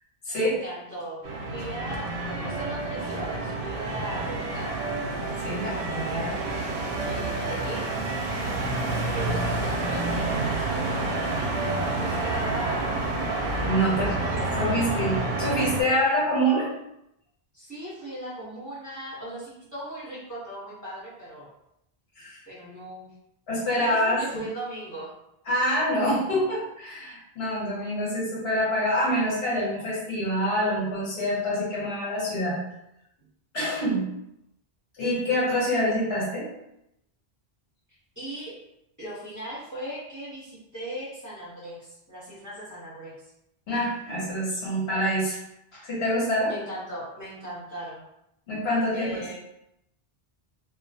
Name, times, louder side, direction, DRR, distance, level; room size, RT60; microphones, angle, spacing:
voice 1, 0.4-1.2 1.5-4.7 7.0-7.9 9.1-13.0 14.0-14.7 17.5-21.5 22.5-23.1 23.7-25.1 38.2-38.5 39.0-43.2 46.4-48.1 48.9-49.4, right 1 dB, 20° right, -10 dB, 0.9 m, -38 dB
sound 1, 1.2-15.8, right 2 dB, 65° right, 0.7 m, -29 dB
voice 2, 5.4-6.5 13.6-14.1 14.4-16.7 22.2-22.4 23.5-24.4 25.5-32.6 33.5-34.1 35.0-36.5 43.7-45.4 45.7-46.5 48.5-49.4, equal, 80° left, -6 dB, 1.1 m, -26 dB
2.3 x 2.1 x 2.7 m, 0.81 s
omnidirectional pair, 1.0 m